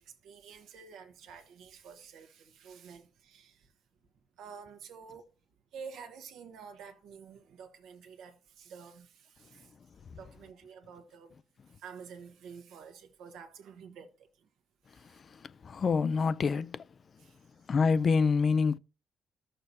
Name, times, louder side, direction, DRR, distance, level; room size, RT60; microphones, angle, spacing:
voice 1, 0.0-3.7 4.4-5.2 5.7-9.7 10.2-11.3 11.8-14.1 17.2-17.3, right 6 dB, 85° right, 1.1 m, -49 dB
voice 2, 15.6-16.8 17.7-18.8, left 5 dB, 45° left, 0.3 m, -26 dB
13.0 x 6.6 x 2.7 m
cardioid pair, 90°, 0 cm